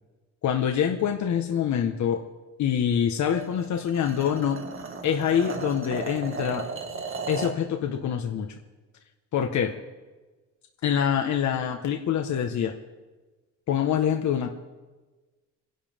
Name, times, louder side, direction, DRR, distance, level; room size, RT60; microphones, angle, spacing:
voice 1, 0.4-2.2 2.6-4.6 5.0-6.6 7.3-8.5 9.3-9.7 10.8-12.7 13.7-14.5, left 8 dB, 70° left, 3 dB, 1.5 m, -25 dB
sound 1, 3.3-7.6, right 4 dB, 45° right, 2.2 m, -35 dB
28.0 x 11.0 x 3.7 m, 1.2 s
cardioid pair, 90°, 30 cm